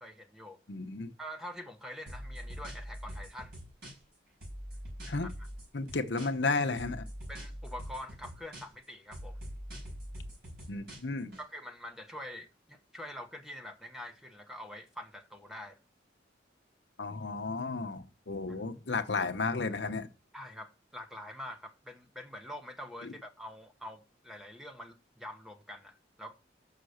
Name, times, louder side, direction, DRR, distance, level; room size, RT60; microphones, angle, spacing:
voice 1, 0.0-0.6 1.2-3.5 5.2-5.3 7.3-9.4 11.4-15.8 20.3-26.3, equal, ahead, 0.9 m, -45 dB
voice 2, 0.7-1.1 5.0-5.3 5.7-7.1 10.7-11.3 17.0-20.1 23.0-23.1, left 3 dB, 65° left, 0.9 m, -33 dB
sound 1, 2.1-4.1 4.4-6.5 6.8-8.8 9.1-11.4, equal, 55° right, 4.7 m, -43 dB
6.8 x 5.7 x 6.4 m
head